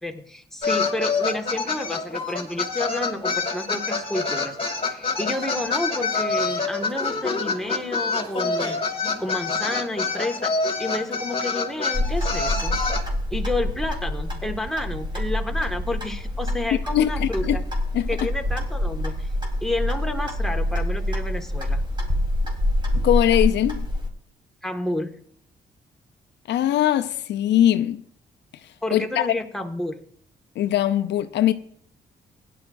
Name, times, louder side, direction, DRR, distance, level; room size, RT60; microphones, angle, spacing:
voice 1, 0.0-8.8 9.2-10.5 10.8-12.8 13.3-17.6 18.1-19.3 19.6-21.8 24.6-25.1 28.8-30.0, left 1 dB, ahead, 1.8 m, -30 dB
sound 1, 0.6-13.0, left 4 dB, 30° left, 2.6 m, -26 dB
Clock, 11.9-24.1, left 1 dB, 25° right, 3.8 m, -26 dB
voice 2, 16.9-17.6 17.9-18.3 23.0-23.9 26.5-28.0 28.9-29.3 30.6-31.5, left 12 dB, 75° left, 0.6 m, -21 dB
16.5 x 11.0 x 2.6 m
supercardioid pair, 55°, 18 cm